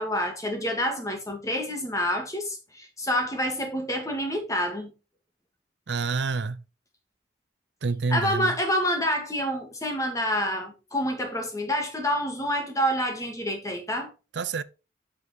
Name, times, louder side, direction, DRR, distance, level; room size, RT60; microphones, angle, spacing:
voice 1, 0.0-4.9 8.1-14.1, equal, 20° left, 1.9 m, -28 dB
voice 2, 5.9-6.6 7.8-8.6 14.3-14.6, right 4 dB, 75° right, 0.6 m, -28 dB
8.5 x 5.2 x 4.3 m
head